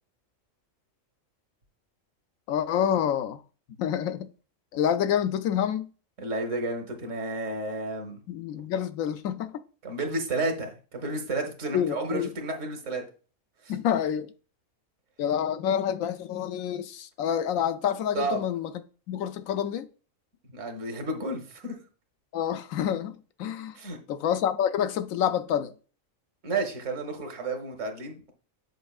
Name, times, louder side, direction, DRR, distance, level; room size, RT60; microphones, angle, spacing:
voice 1, 2.5-3.4 3.8-4.3 4.7-5.9 8.3-9.6 11.7-12.3 13.7-14.3 15.2-18.7 19.1-19.9 22.3-23.8 24.1-25.7, left 9 dB, 90° left, 1.0 m, -27 dB
voice 2, 6.2-8.2 9.8-13.0 13.6-13.7 18.1-18.4 20.5-21.8 23.7-24.0 26.4-28.3, right 2 dB, 65° right, 1.4 m, -31 dB
7.9 x 5.2 x 2.4 m
omnidirectional pair, 1.4 m